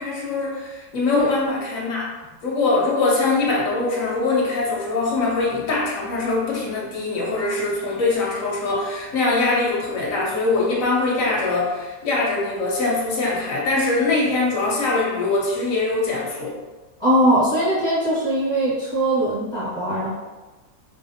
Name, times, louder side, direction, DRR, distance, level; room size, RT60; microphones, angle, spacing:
voice 1, 0.0-2.1 2.4-16.6, left 3 dB, 55° left, -4 dB, 1.0 m, -22 dB
voice 2, 17.0-20.1, right 1 dB, 20° left, -11 dB, 0.9 m, -20 dB
4.2 x 2.0 x 2.7 m, 1.2 s
omnidirectional pair, 2.1 m